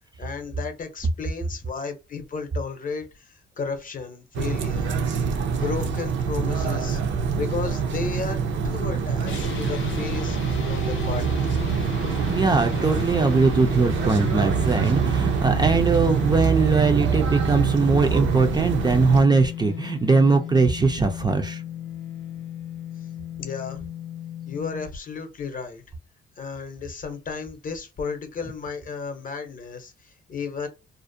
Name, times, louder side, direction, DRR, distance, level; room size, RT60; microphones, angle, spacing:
voice 1, 0.2-5.0 5.5-7.0 7.3-10.4 10.7-11.5 23.4-23.9 24.5-25.8 26.4-30.7, left 5 dB, 45° left, 0.7 m, -33 dB
sound 1, 4.3-19.2, right 6 dB, 70° right, 0.5 m, -25 dB
sound 2, 9.3-24.9, left 11 dB, 80° left, 0.5 m, -35 dB
voice 2, 12.3-21.6, right 4 dB, 20° right, 0.4 m, -21 dB
2.5 x 2.0 x 2.6 m
cardioid pair, 90°, 20 cm